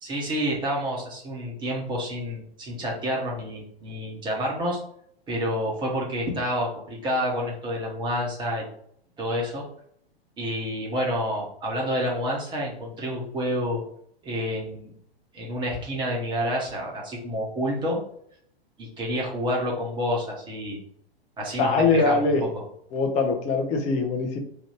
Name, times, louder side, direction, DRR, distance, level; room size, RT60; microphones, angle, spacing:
voice 1, 0.0-4.8 5.3-8.7 9.2-9.6 10.4-13.8 14.2-14.9 15.3-18.0 18.8-20.8 21.4-22.5, equal, 15° right, -2 dB, 1.2 m, -29 dB
voice 2, 21.6-22.4 22.9-24.4, left 4 dB, 20° left, 3 dB, 0.7 m, -22 dB
3.4 x 2.6 x 4.4 m, 0.66 s
figure-of-eight pair, 110°, 31 cm